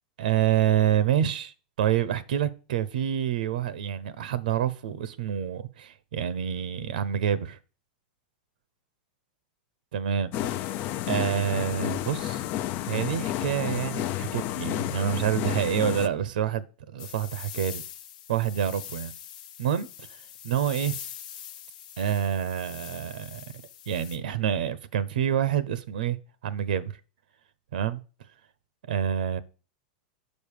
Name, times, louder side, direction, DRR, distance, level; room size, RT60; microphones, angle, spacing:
voice 1, 0.2-7.6 9.9-10.7 11.1-12.4 12.9-16.6 16.9-17.8 18.3-19.1 19.6-19.9 20.4-21.0 22.0-23.4 23.9-26.2 26.4-26.9 27.7-28.0 28.9-29.4, right 9 dB, 80° right, 0.9 m, -27 dB
sound 1, 10.3-16.1, left 13 dB, 40° left, 0.5 m, -31 dB
sound 2, 17.0-24.2, left 9 dB, 65° left, 1.1 m, -43 dB
6.6 x 5.4 x 6.6 m
supercardioid pair, 150°, 5 cm